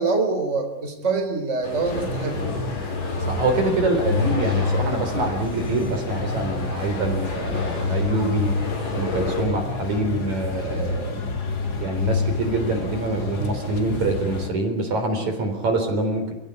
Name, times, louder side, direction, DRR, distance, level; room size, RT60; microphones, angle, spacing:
voice 1, 0.0-2.6, right 3 dB, 20° right, 4 dB, 4.2 m, -25 dB
sound 1, 1.6-9.4, left 2 dB, 50° left, 6.5 m, -33 dB
sound 2, 1.8-14.5, left 4 dB, 30° left, 2.4 m, -28 dB
voice 2, 3.2-8.5 8.9-11.2 11.8-16.3, right 2 dB, 55° right, 6 dB, 5.0 m, -25 dB
28.0 x 17.5 x 9.9 m, 0.81 s
omnidirectional pair, 3.9 m